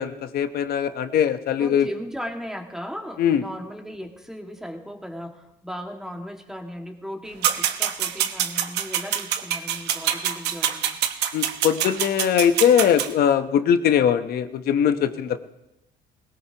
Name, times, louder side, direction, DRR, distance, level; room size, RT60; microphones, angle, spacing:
voice 1, 0.0-1.9 3.2-3.4 11.3-15.4, left 8 dB, 65° left, 9 dB, 1.1 m, -21 dB
voice 2, 1.6-11.0, equal, 5° right, 2 dB, 2.0 m, -37 dB
sound 1, 7.4-13.1, right 10 dB, 80° right, 1.0 m, -25 dB
20.5 x 18.0 x 3.0 m, 0.90 s
cardioid pair, 110°, 17 cm